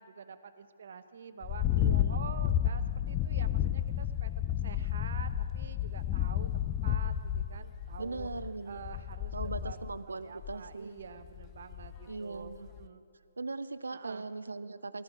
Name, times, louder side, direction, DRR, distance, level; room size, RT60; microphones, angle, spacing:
voice 1, 0.0-4.3 4.6-8.3 8.6-9.8 10.1-13.0 13.9-14.3, right 6 dB, 60° right, 9 dB, 0.9 m, -47 dB
sound 1, 1.4-10.0 10.4-10.7 11.2-12.2 12.5-12.8, left 11 dB, 25° left, 0.4 m, -31 dB
voice 2, 1.8-2.2 8.0-8.8 9.3-11.0 12.1-12.7 13.4-15.0, right 3 dB, 85° right, 13 dB, 0.5 m, -39 dB
18.5 x 13.0 x 4.9 m, 2.6 s
hypercardioid pair, 145°, 0 cm